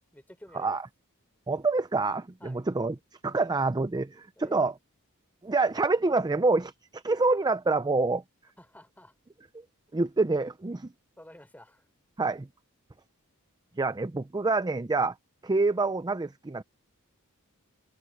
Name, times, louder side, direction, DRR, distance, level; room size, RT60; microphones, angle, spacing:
voice 1, 0.1-0.8 2.4-2.6 4.4-4.6 8.6-9.1 11.2-11.9, left 1 dB, 10° left, 4.3 m, -51 dB
voice 2, 1.5-2.9 3.2-4.7 5.4-8.2 9.9-10.9 12.2-12.5 13.8-15.1 15.4-16.6, right 3 dB, 20° right, 0.5 m, -26 dB
open air
head